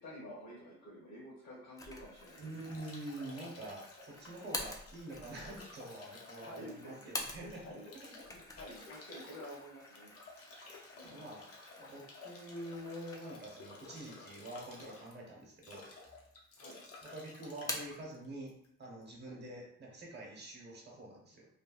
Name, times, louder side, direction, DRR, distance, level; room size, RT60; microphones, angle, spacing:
voice 1, 0.0-2.5 6.4-7.1 7.4-7.8 8.3-10.1 11.0-11.3 16.6-16.8 19.2-19.4, equal, 70° left, -9 dB, 1.4 m, -50 dB
Bathtub (filling or washing) / Drip / Trickle dribble, 1.8-19.0, left 3 dB, 50° left, 0.8 m, -54 dB
sound 1, 1.8-7.8 8.1-13.6 14.0-14.1 14.9-15.6 15.9-16.7 17.0-18.1, left 2 dB, 10° left, 0.4 m, -47 dB
voice 2, 2.4-7.7 8.4-8.6 11.0-11.4 11.8-15.9 17.1-21.5, right 1 dB, 35° right, -2 dB, 1.1 m, -46 dB
3.3 x 2.3 x 2.3 m, 0.70 s
cardioid pair, 90°, 30 cm